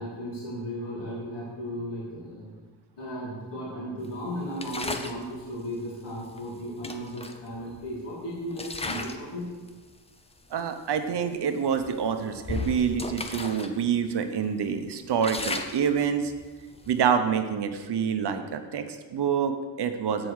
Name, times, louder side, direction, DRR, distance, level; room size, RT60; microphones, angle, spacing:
voice 1, 0.0-2.4 3.0-9.5, equal, 70° left, -6 dB, 2.4 m, -35 dB
sound 1, 4.6-5.2 6.4-6.5 6.8-8.0 8.5-9.3 9.7-9.9 10.6-10.7 11.1-11.3 11.8-13.7 14.1-14.2 14.6-17.1, left 3 dB, 15° left, 0.4 m, -35 dB
voice 2, 10.5-16.3 16.9-20.3, right 7 dB, 65° right, 8 dB, 0.8 m, -27 dB
7.6 x 4.7 x 6.3 m, 1.4 s
wide cardioid pair, 115°, 43 cm